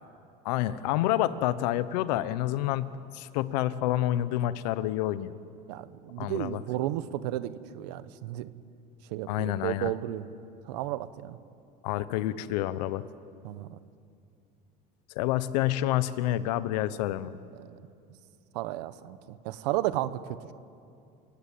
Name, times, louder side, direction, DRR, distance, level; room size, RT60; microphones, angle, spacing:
voice 1, 0.4-5.3 6.2-6.6 9.3-9.9 11.8-13.0 15.1-17.4, left 14 dB, 85° left, 15 dB, 1.0 m, -28 dB
voice 2, 5.7-8.5 9.1-10.2 10.7-11.4 13.4-13.8 17.6-17.9 18.5-20.5, right 14 dB, 85° right, 14 dB, 1.1 m, -33 dB
28.0 x 17.0 x 8.6 m, 2.5 s
supercardioid pair, 125°, 21 cm